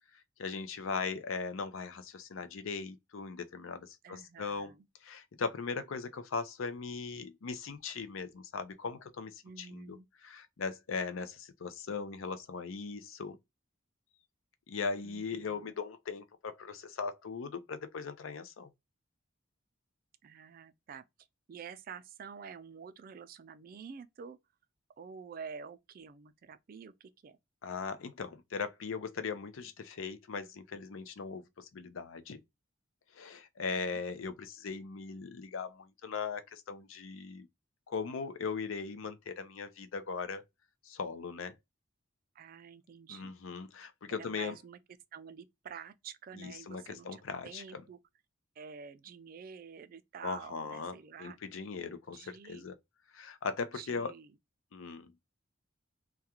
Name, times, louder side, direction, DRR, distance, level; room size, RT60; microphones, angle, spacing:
voice 1, 0.1-4.7 5.0-10.0 10.2-13.4 14.7-18.7 27.6-32.4 33.1-37.5 37.9-40.4 40.8-41.5 43.1-44.6 46.4-47.8 50.2-52.7 53.1-54.1 54.7-55.1, left 5 dB, 75° left, 0.5 m, -39 dB
voice 2, 4.0-4.9 9.4-10.1 15.0-15.7 20.2-21.1 21.5-24.4 25.0-27.4 33.6-34.0 42.3-43.3 44.1-44.8 45.1-48.0 48.6-51.4 51.9-52.7 53.7-54.3, right 6 dB, 45° right, 0.3 m, -48 dB
2.4 x 2.3 x 2.7 m
head